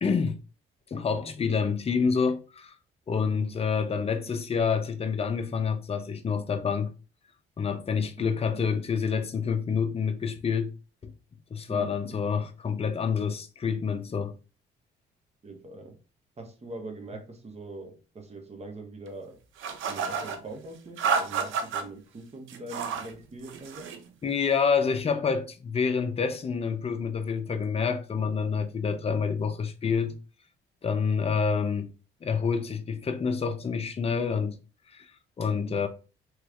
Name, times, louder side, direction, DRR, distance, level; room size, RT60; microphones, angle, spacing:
voice 1, 0.0-0.4 0.9-2.7 3.1-6.9 7.6-10.7 11.0-11.1 11.5-14.3 24.2-30.1 30.8-31.9 32.2-34.6 34.9-35.1 35.4-35.9, left 5 dB, 30° left, 0.5 m, -27 dB
voice 2, 3.1-4.3 8.2-8.6 11.7-12.3 15.4-15.9 16.4-19.4 19.9-23.9 28.9-29.2 35.5-35.9, right 2 dB, 35° right, 0.9 m, -43 dB
sound 1, 19.6-20.4 21.0-21.8 22.5-23.1 23.4-24.0, right 6 dB, 80° right, 0.6 m, -30 dB
3.2 x 3.1 x 2.4 m
cardioid pair, 90°, 20 cm